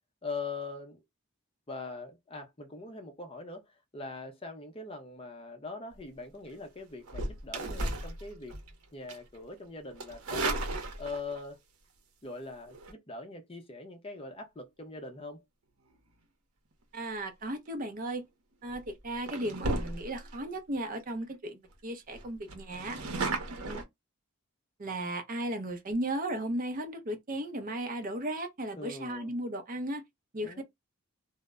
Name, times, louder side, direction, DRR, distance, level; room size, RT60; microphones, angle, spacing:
voice 1, 0.2-1.0 1.7-8.5 8.9-10.6 11.0-11.6 12.2-15.4 28.7-29.3 30.4-30.6, left 3 dB, 25° left, 0.6 m, -42 dB
sound 1, 7.0-8.7 9.1-9.4 10.0-11.4 12.7-12.9 18.0-18.2 18.7-18.9 19.2-20.4 20.9-21.0 21.2-21.3 21.6-21.7 22.1-23.8, right 2 dB, 85° right, 0.7 m, -35 dB
voice 2, 16.9-18.2 18.6-23.0 23.7-23.8 24.8-30.0 30.3-30.6, right 1 dB, 40° right, 0.5 m, -35 dB
2.1 x 2.0 x 3.4 m
head